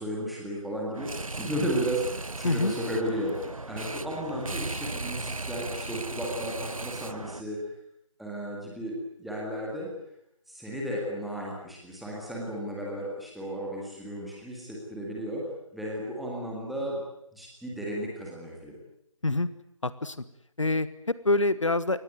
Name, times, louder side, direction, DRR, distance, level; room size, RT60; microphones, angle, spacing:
voice 1, 0.0-7.6 8.2-9.9 10.5-17.0 17.3-18.8, equal, ahead, -4 dB, 1.9 m, -34 dB
sound 1, 0.9-7.4, right 2 dB, 80° right, 1.0 m, -37 dB
voice 2, 19.8-20.2 20.6-22.0, left 2 dB, 65° left, 15 dB, 1.4 m, -26 dB
25.0 x 19.5 x 9.4 m, 0.77 s
figure-of-eight pair, 165°, 17 cm